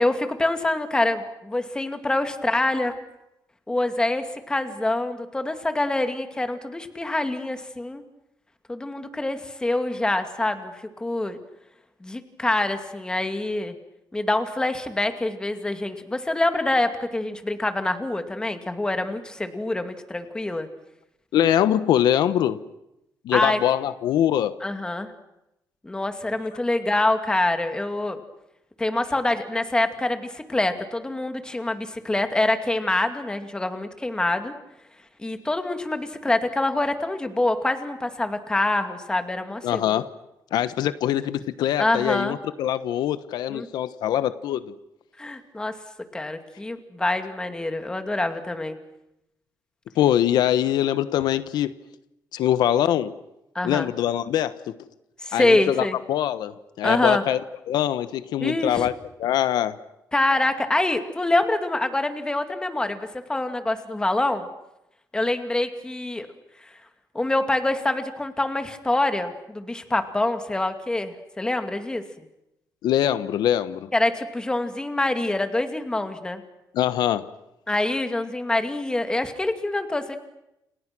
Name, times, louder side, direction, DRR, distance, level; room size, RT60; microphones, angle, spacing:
voice 1, 0.0-2.9 3.7-8.0 8.7-11.4 12.0-13.8 14.1-20.7 23.3-23.6 24.6-25.1 25.8-28.2 28.8-34.5 35.2-40.0 41.8-42.4 43.5-43.7 45.2-45.7 46.1-48.8 53.5-53.9 55.2-56.0 56.8-57.2 58.4-58.9 60.1-64.5 65.1-66.3 66.6-66.7 67.1-72.0 73.9-76.4 77.7-80.2, left 2 dB, 10° left, 2.5 m, -25 dB
voice 2, 21.3-22.6 23.2-24.6 39.6-40.1 40.5-44.7 50.0-51.7 52.3-53.2 53.6-54.7 55.3-57.4 57.7-58.9 59.2-59.7 72.8-73.9 76.7-77.3, left 11 dB, 85° left, 1.1 m, -23 dB
30.0 x 29.0 x 6.2 m
cardioid pair, 145°, 7 cm